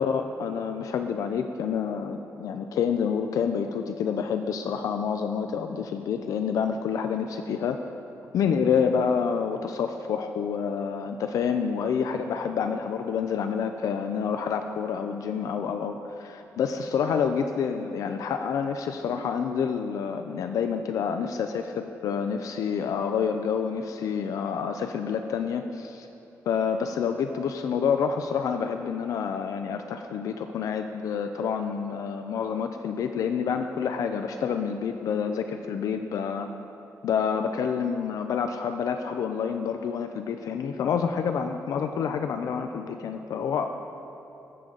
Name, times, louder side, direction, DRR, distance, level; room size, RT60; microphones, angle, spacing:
voice 1, 0.0-7.8 8.3-26.1 26.5-36.5 37.0-43.9, left 6 dB, 70° left, 7 dB, 0.5 m, -28 dB
21.0 x 7.8 x 3.9 m, 2.9 s
wide cardioid pair, 155°, 6 cm